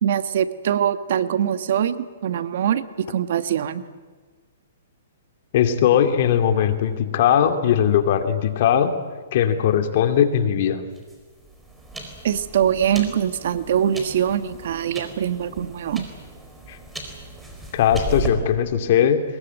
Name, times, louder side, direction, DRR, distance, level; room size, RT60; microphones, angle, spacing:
voice 1, 0.0-3.8 12.2-16.1, right 9 dB, 60° right, 11 dB, 1.4 m, -23 dB
voice 2, 5.5-8.9 9.3-10.8 16.7-16.8 17.7-19.2, left 9 dB, 50° left, 8 dB, 2.4 m, -19 dB
sound 1, 10.9-18.3, right 2 dB, 5° right, 4.3 m, -36 dB
22.5 x 21.5 x 9.3 m, 1.4 s
hypercardioid pair, 145°, 0 cm